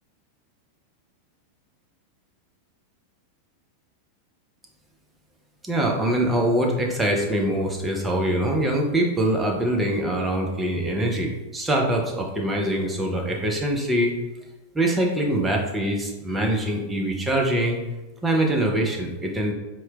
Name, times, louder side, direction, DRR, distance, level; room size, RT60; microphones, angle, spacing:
voice 1, 5.6-14.2 14.7-17.8 18.2-19.5, right 1 dB, 10° right, 0 dB, 0.5 m, -23 dB
4.3 x 2.1 x 2.3 m, 1.1 s
figure-of-eight pair, 90°, 0 cm